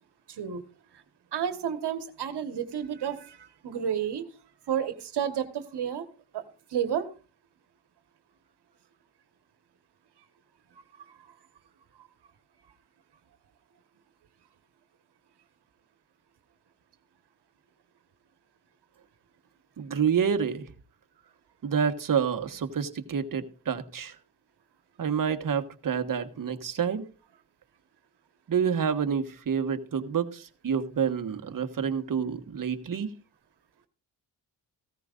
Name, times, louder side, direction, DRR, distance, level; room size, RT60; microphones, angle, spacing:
voice 1, 0.3-0.6 0.9-1.0 1.3-4.3 4.7-6.0 6.3-6.4 6.7-7.1 11.0-11.3 12.0-12.1, right 8 dB, 70° right, 1.5 m, -31 dB
voice 2, 19.8-20.7 21.6-24.2 25.0-27.1 28.5-33.1, right 7 dB, 50° right, 1.4 m, -28 dB
16.0 x 14.0 x 2.5 m
cardioid pair, 75°, 42 cm